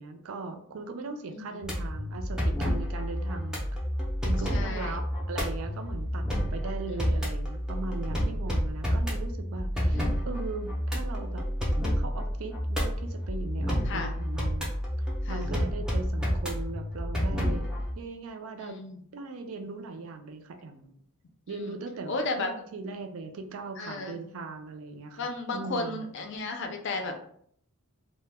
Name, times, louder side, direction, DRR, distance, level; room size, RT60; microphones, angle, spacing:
voice 1, 0.0-3.6 4.2-11.5 12.0-14.7 15.0-17.6 18.0-18.8 19.1-20.9 21.5-25.2 25.5-26.0, right 3 dB, 65° right, 6 dB, 0.4 m, -39 dB
sound 1, 1.6-17.9, equal, 5° right, 0.5 m, -30 dB
voice 2, 4.5-5.0 7.0-7.2 9.9-10.0 13.8-14.1 15.2-15.5 18.6-19.0 21.5-21.8 22.1-22.5 23.8-24.2 25.2-27.3, left 3 dB, 55° left, 4 dB, 0.4 m, -34 dB
2.1 x 2.1 x 3.3 m, 0.64 s
head